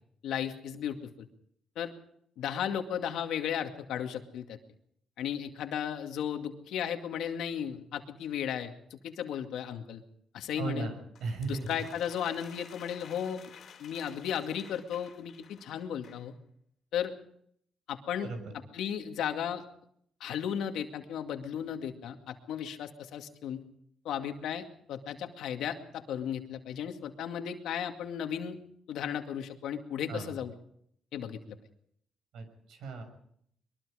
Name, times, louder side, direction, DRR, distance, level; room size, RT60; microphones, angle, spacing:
voice 1, 0.2-1.0 1.8-1.9 2.4-4.6 5.2-10.0 10.3-10.9 11.5-13.5 13.8-16.3 16.9-17.1 17.9-18.3 18.7-19.6 20.2-23.6 24.0-28.6 28.9-30.5 31.1-31.6, left 9 dB, 80° left, 5 dB, 2.2 m, -35 dB
voice 2, 10.6-11.8 18.2-18.5 30.1-30.3 32.3-33.0, right 3 dB, 80° right, 7 dB, 6.2 m, -37 dB
sound 1, 11.2-16.3, left 7 dB, 60° left, 3.1 m, -53 dB
22.5 x 22.5 x 5.1 m, 0.68 s
cardioid pair, 115°, 0 cm